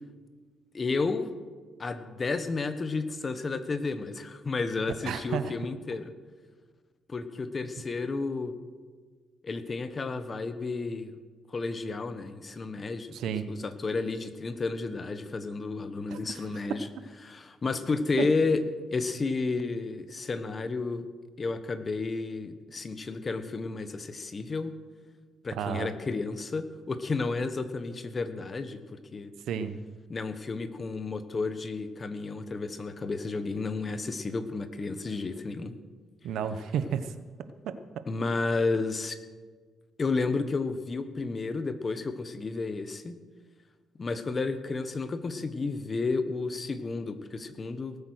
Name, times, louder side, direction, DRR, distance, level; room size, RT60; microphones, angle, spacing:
voice 1, 0.7-1.3 1.8-6.1 7.1-8.5 9.4-11.1 11.5-13.1 13.5-16.9 17.2-18.6 18.9-21.1 21.4-24.7 25.4-29.3 30.1-35.7 38.1-39.2 40.0-43.1 44.0-48.0, left 3 dB, 35° left, 11 dB, 1.2 m, -32 dB
voice 2, 5.0-5.5 13.1-13.5 16.1-16.4 16.7-16.8 18.2-18.3 25.5-25.9 29.5-29.8 36.2-37.1 37.6-37.8, right 8 dB, 80° right, 11 dB, 0.9 m, -32 dB
19.0 x 8.5 x 6.4 m, 1.5 s
cardioid pair, 90°, 0 cm